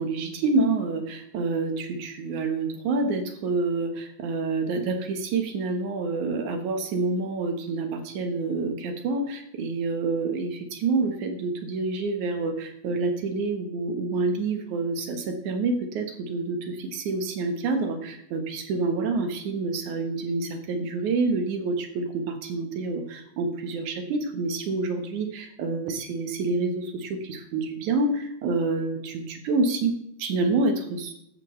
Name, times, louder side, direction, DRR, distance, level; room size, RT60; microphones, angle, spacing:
voice 1, 0.0-29.9 30.2-31.1, right 3 dB, 65° right, 6 dB, 2.3 m, -27 dB
14.0 x 12.0 x 3.2 m, 0.76 s
omnidirectional pair, 4.4 m